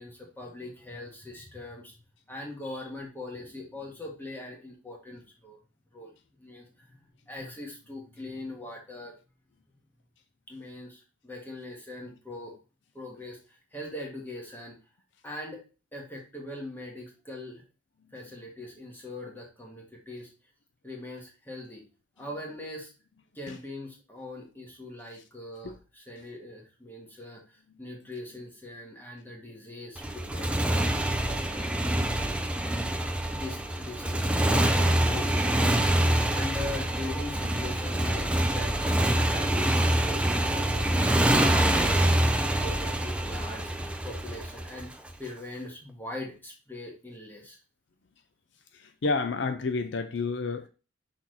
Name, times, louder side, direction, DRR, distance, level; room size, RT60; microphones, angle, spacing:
voice 1, 0.0-2.0 2.3-5.6 5.9-6.1 6.4-6.9 7.3-9.2 10.5-12.6 12.9-14.8 15.2-15.6 15.9-17.6 18.1-20.3 20.8-21.8 22.2-22.9 23.3-32.8 33.3-35.8 36.3-38.3 38.5-42.1 42.6-44.9 45.2-47.6, left 1 dB, 10° left, 1.8 m, -41 dB
Motorcycle, 30.0-45.1, right 1 dB, 5° right, 0.5 m, -26 dB
voice 2, 48.7-50.7, left 3 dB, 60° left, 0.5 m, -30 dB
6.0 x 4.4 x 4.0 m
head